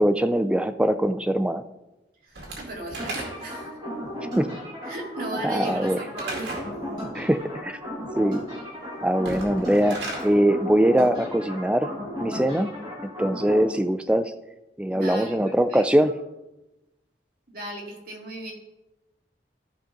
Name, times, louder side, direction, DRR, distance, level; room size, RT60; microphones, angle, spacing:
voice 1, 0.0-1.6 4.4-4.5 5.4-6.0 7.1-7.8 8.2-8.4 9.0-11.9 12.2-12.7 13.2-14.3 14.8-16.1, right 1 dB, 5° right, 9 dB, 0.3 m, -22 dB
voice 2, 2.2-3.7 4.8-6.6 14.9-16.1 17.5-18.5, right 1 dB, 55° right, -2 dB, 2.2 m, -37 dB
Slam / Wood, 2.4-3.7 6.2-6.7 9.1-10.3, right 2 dB, 80° right, 2.2 m, -35 dB
sound 1, 3.0-13.6, equal, 25° right, 3.6 m, -35 dB
14.0 x 5.0 x 3.8 m, 0.99 s
head